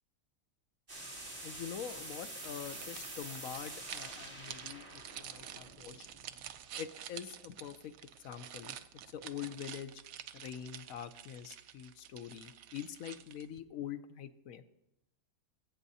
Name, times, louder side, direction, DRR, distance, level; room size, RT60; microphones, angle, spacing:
sound 1, 0.9-6.6, right 1 dB, 35° right, 2.9 m, -47 dB
voice 1, 1.4-6.1 6.8-7.9 8.2-8.8 9.1-9.9 10.3-14.6, left 9 dB, 70° left, 11 dB, 1.0 m, -44 dB
sound 2, 2.4-13.6, right 10 dB, 70° right, 1.0 m, -49 dB
21.0 x 8.7 x 2.8 m, 0.87 s
omnidirectional pair, 1.6 m